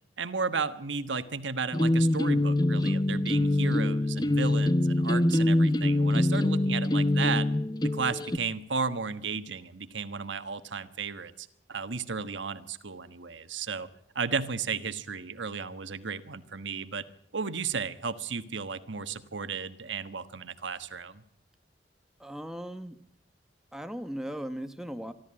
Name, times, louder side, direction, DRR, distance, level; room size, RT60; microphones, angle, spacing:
voice 1, 0.2-7.5 7.8-13.9 14.1-17.0 17.3-21.2, right 5 dB, 85° right, 12 dB, 1.3 m, -34 dB
sound 1, 1.7-8.4, left 1 dB, 20° left, 0.7 m, -24 dB
voice 2, 22.2-23.0 23.7-25.1, equal, 5° right, 8 dB, 1.1 m, -37 dB
25.5 x 13.0 x 8.7 m, 0.69 s
head